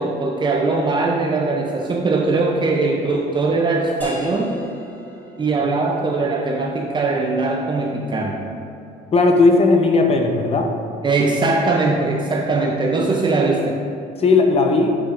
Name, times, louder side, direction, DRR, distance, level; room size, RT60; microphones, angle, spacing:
voice 1, 0.0-4.6 5.4-8.4 11.0-13.8, right 3 dB, 25° right, 0 dB, 0.5 m, -20 dB
sound 1, 4.0-9.4, right 1 dB, 10° left, 1.3 m, -41 dB
voice 2, 9.1-10.7 14.2-15.0, left 3 dB, 35° left, 3 dB, 0.8 m, -16 dB
8.3 x 5.6 x 2.5 m, 2.6 s
cardioid pair, 110°, 17 cm